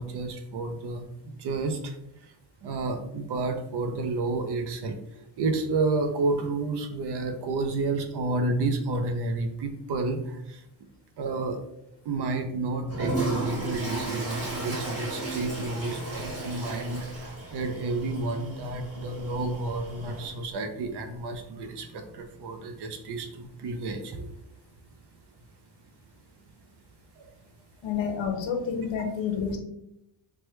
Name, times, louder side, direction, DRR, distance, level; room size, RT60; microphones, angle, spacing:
voice 1, 0.0-1.9 2.6-5.0 5.4-10.6 11.2-11.6 12.1-24.3 27.2-27.3, right 3 dB, 55° right, 6 dB, 0.5 m, -30 dB
Toilet flush, 12.9-20.4, right 2 dB, 30° right, 1.2 m, -34 dB
voice 2, 27.8-29.6, left 6 dB, 65° left, 4 dB, 0.7 m, -29 dB
3.0 x 2.2 x 3.1 m, 0.78 s
cardioid pair, 135°, 48 cm